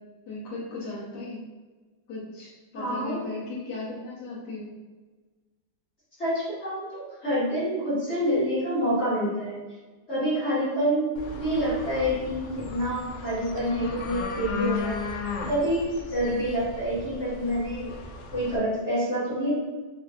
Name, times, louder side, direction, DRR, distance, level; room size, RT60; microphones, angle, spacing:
voice 1, 0.3-1.5 2.1-4.8, left 2 dB, 65° left, -7 dB, 1.5 m, -37 dB
voice 2, 2.7-3.3 6.2-9.6 10.1-15.0 15.5-17.9 18.3-19.5, equal, 35° left, -10 dB, 1.7 m, -27 dB
sound 1, 11.2-18.6, left 4 dB, 90° left, 1.3 m, -36 dB
3.8 x 3.2 x 2.4 m, 1.3 s
omnidirectional pair, 2.0 m